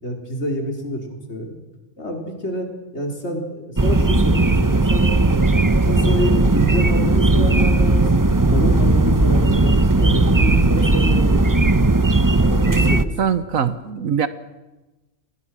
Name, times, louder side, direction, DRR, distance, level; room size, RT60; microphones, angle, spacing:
voice 1, 0.0-1.0 1.3-1.5 2.0-5.1 5.8-8.3 8.5-11.8 12.4-13.1, equal, 50° left, 2 dB, 4.6 m, -27 dB
sound 1, 3.8-13.0, right 2 dB, 15° right, 0.7 m, -16 dB
voice 2, 13.2-14.3, right 7 dB, 75° right, 13 dB, 1.5 m, -22 dB
28.5 x 21.0 x 6.2 m, 1.1 s
omnidirectional pair, 1.5 m